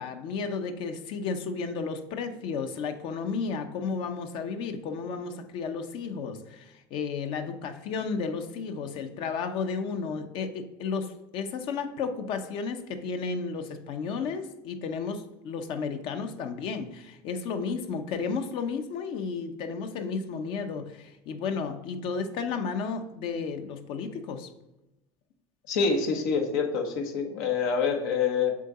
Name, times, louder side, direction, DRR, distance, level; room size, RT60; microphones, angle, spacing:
voice 1, 0.0-24.5, left 5 dB, 55° left, 0.9 m, -33 dB
voice 2, 25.7-28.6, left 5 dB, 80° left, 1.3 m, -26 dB
7.5 x 3.8 x 4.2 m
supercardioid pair, 125°, 10 cm